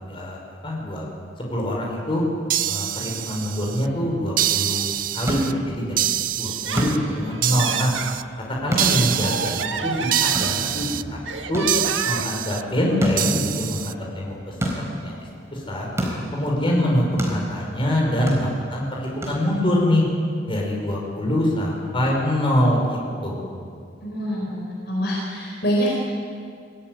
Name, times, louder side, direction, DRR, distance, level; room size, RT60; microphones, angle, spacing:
voice 1, 0.1-1.1 1.5-2.3 2.6-6.1 6.4-7.9 8.5-11.2 11.5-11.6 12.0-15.2 15.5-15.9 16.3-20.0 20.5-23.6, left 1 dB, 30° left, -2 dB, 5.5 m, -24 dB
sound 1, 2.5-3.9 4.4-5.5 6.0-7.0 7.4-8.2 8.8-9.6 10.1-11.0 11.7-12.6 13.2-13.9, right 12 dB, 45° right, 0.5 m, -25 dB
sound 2, 4.9-19.9, equal, 15° right, 4.3 m, -33 dB
Laughter, 6.4-8.2 8.7-10.9 11.3-12.4, right 5 dB, 75° right, 1.6 m, -30 dB
voice 2, 24.0-25.9, equal, 60° left, -3 dB, 5.0 m, -25 dB
24.5 x 17.0 x 9.6 m, 2.3 s
head